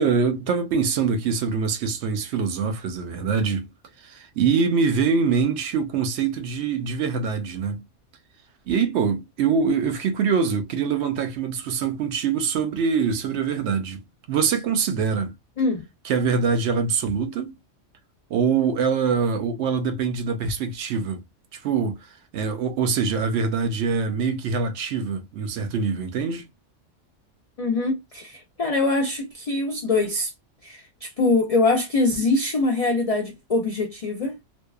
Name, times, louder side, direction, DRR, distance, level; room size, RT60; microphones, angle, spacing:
voice 1, 0.0-3.7 4.0-7.8 8.7-14.0 14.3-15.3 16.0-17.6 18.3-21.2 21.5-22.0 22.3-26.4, right 5 dB, 70° right, 0.8 m, -24 dB
voice 2, 15.6-15.9 27.6-30.3 30.6-34.4, left 3 dB, 55° left, 0.4 m, -23 dB
2.6 x 2.2 x 2.3 m
omnidirectional pair, 1.3 m